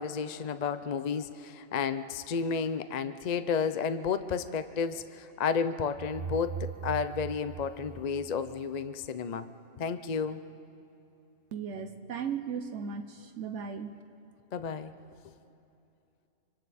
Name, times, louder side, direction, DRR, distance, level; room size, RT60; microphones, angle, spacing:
voice 1, 0.0-9.5 9.8-10.4 14.5-14.9, left 6 dB, 50° left, 11 dB, 0.5 m, -32 dB
sound 1, 6.0-8.9, right 7 dB, 45° right, 0.4 m, -40 dB
voice 2, 11.5-13.9, right 6 dB, 70° right, 7 dB, 1.0 m, -36 dB
26.0 x 25.0 x 4.2 m, 2.7 s
omnidirectional pair, 1.3 m